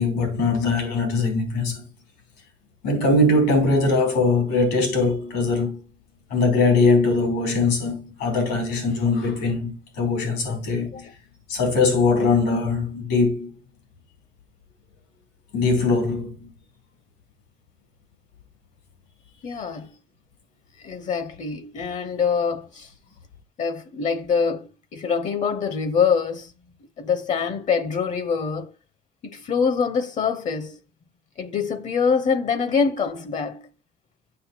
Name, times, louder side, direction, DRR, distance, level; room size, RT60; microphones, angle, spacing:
voice 1, 0.0-1.8 2.8-5.8 6.3-11.1 11.5-13.5 15.5-16.5, left 3 dB, 90° left, 3.8 m, -21 dB
voice 2, 19.4-19.9 20.8-22.9 23.6-26.5 27.0-28.7 29.2-30.8 31.4-33.7, left 6 dB, 45° left, 0.8 m, -24 dB
7.6 x 6.4 x 4.5 m
cardioid pair, 110°, 17 cm